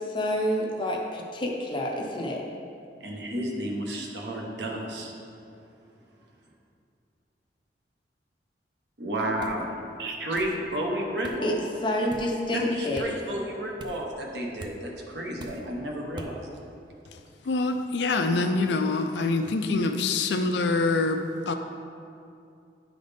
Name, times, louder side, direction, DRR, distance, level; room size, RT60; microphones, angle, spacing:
voice 1, 0.0-2.4 11.4-11.6 11.8-13.1, left 1 dB, 25° left, 0 dB, 0.6 m, -28 dB
voice 2, 3.0-5.1 9.0-11.6 12.5-16.6, right 1 dB, 70° right, -1 dB, 1.0 m, -32 dB
sound 1, 9.4-9.6 10.3-10.6 11.2-11.4 12.1-12.3 12.9-13.1 13.8-14.1 14.6-14.8 15.4-15.7 16.2-16.3, right 2 dB, 25° right, 0.4 m, -43 dB
voice 3, 17.4-21.5, left 3 dB, 75° left, 6 dB, 0.5 m, -25 dB
10.0 x 4.0 x 3.4 m, 2.5 s
head